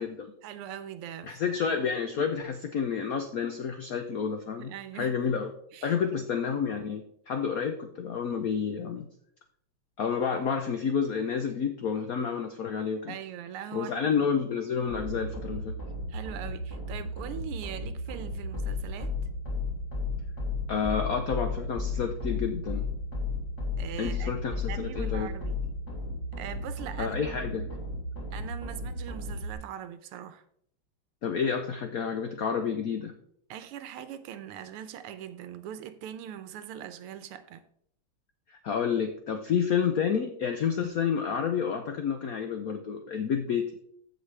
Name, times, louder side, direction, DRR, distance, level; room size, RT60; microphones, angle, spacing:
voice 1, 0.4-1.6 4.6-5.2 5.7-5.9 13.1-14.3 15.6-15.7 16.1-19.1 23.8-25.6 26.4-27.2 28.3-30.4 33.5-37.6, right 10 dB, 85° right, 1.7 m, -41 dB
voice 2, 1.3-5.5 5.8-9.1 10.0-13.1 13.7-15.7 20.7-22.8 24.0-25.3 27.0-27.7 31.2-33.1 38.5-43.7, left 7 dB, 80° left, 0.8 m, -30 dB
sound 1, 14.9-29.5, left 2 dB, 45° left, 3.3 m, -34 dB
14.5 x 5.3 x 3.3 m
omnidirectional pair, 2.4 m